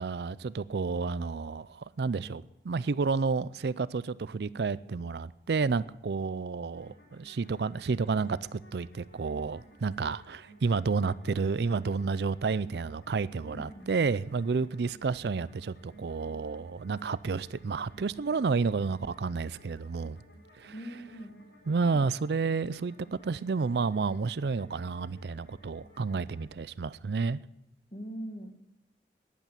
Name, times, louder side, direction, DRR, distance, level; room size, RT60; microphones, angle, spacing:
voice 1, 0.0-20.2 20.6-20.7 21.7-27.4, right 4 dB, 70° right, 0.4 m, -30 dB
sound 1, 6.7-26.5, right 1 dB, 80° left, 4.1 m, -57 dB
voice 2, 13.5-13.9 20.7-21.4 27.9-28.5, equal, 40° left, 1.7 m, -42 dB
15.0 x 11.0 x 7.1 m
head